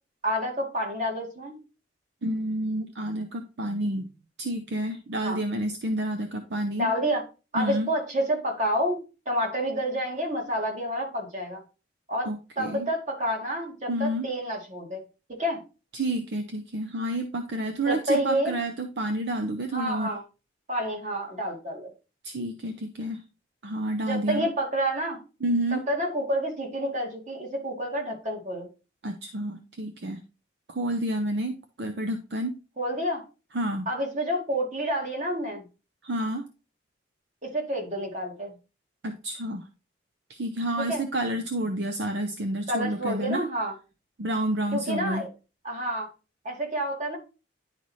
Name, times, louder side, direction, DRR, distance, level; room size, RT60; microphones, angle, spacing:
voice 1, 0.2-1.6 5.2-5.4 6.8-7.2 7.5-11.6 12.1-12.3 12.6-15.0 15.4-15.6 17.9-18.6 19.7-20.2 20.7-21.9 24.1-25.2 25.9-28.7 32.8-33.2 33.9-35.6 37.4-38.5 40.9-41.0 42.7-43.7 44.7-45.3 45.6-46.1 46.4-47.2, equal, 40° right, 0 dB, 2.0 m, -29 dB
voice 2, 2.2-4.1 4.4-6.9 7.5-7.9 12.3-12.9 13.9-14.3 15.9-20.1 22.2-23.2 23.6-24.5 25.4-25.9 29.0-30.2 30.7-32.6 33.5-33.9 36.0-36.5 39.0-39.7 40.3-43.5 44.2-45.2, right 1 dB, 60° right, 7 dB, 0.6 m, -29 dB
10.5 x 4.1 x 3.1 m, 0.31 s
head